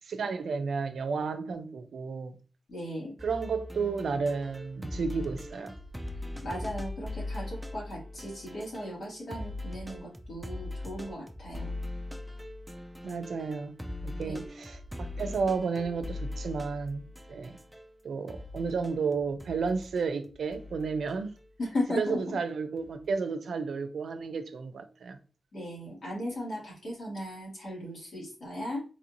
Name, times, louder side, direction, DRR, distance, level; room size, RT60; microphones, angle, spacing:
voice 1, 0.1-2.4 3.2-5.7 13.0-13.7 14.0-17.6 18.0-21.3 22.0-25.2, right 5 dB, 90° right, 0.5 m, -32 dB
voice 2, 2.7-3.1 6.4-11.7 14.2-14.4 21.6-22.2 25.5-28.8, left 1 dB, 70° left, 2.1 m, -36 dB
sound 1, 3.2-9.1 9.3-17.9 18.3-21.4 22.8-23.1, left 1 dB, 5° right, 0.4 m, -41 dB
4.1 x 2.6 x 2.9 m
wide cardioid pair, 100°, 0 cm